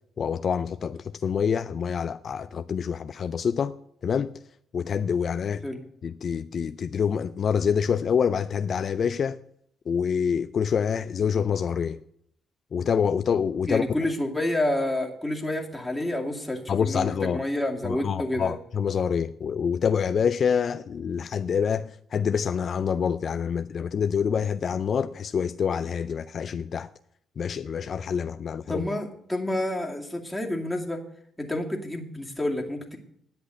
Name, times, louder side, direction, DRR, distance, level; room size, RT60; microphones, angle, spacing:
voice 1, 0.2-3.7 4.0-4.3 4.7-5.6 6.0-9.4 9.9-12.0 12.7-13.9 16.7-17.4 17.8-26.9 27.4-28.9, left 7 dB, 50° left, 0.4 m, -26 dB
voice 2, 13.6-18.5 28.7-31.0 31.4-33.0, left 1 dB, 5° left, 2.3 m, -29 dB
10.5 x 8.1 x 8.1 m
cardioid pair, 90°, 0 cm